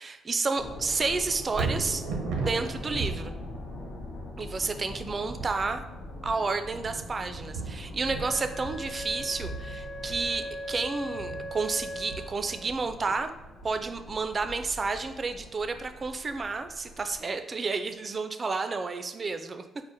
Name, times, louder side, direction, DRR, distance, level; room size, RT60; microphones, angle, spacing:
voice 1, 0.0-2.0 2.4-3.3 4.4-5.8 6.2-13.3 13.6-19.6, right 4 dB, 35° right, 8 dB, 0.3 m, -31 dB
sound 1, 0.6-17.2, left 2 dB, 75° left, 0.7 m, -43 dB
Thunder, 1.5-15.7 16.1-16.2, right 4 dB, 90° right, 0.6 m, -38 dB
Wind instrument woodwind instrument, 8.2-12.8, equal, 25° left, 1.0 m, -39 dB
4.8 x 2.1 x 3.9 m, 1.0 s
cardioid pair, 90°, 0 cm